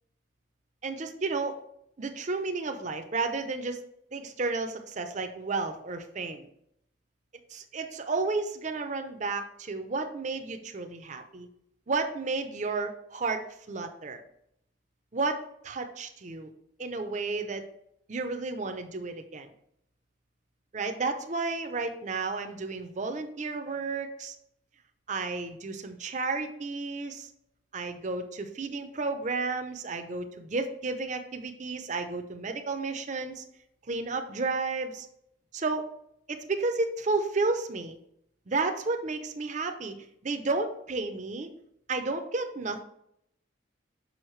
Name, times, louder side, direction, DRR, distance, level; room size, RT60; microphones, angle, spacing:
voice 1, 0.8-1.6 2.0-3.8 4.1-6.5 7.5-11.5 11.9-14.2 15.1-16.5 16.8-17.7 18.1-19.5 20.7-24.4 25.1-27.3 27.7-33.4 33.9-35.1 35.5-35.9 36.3-38.0 38.5-41.5 41.9-42.8, right 3 dB, 40° right, 6 dB, 0.6 m, -32 dB
6.4 x 5.3 x 3.2 m, 0.74 s
head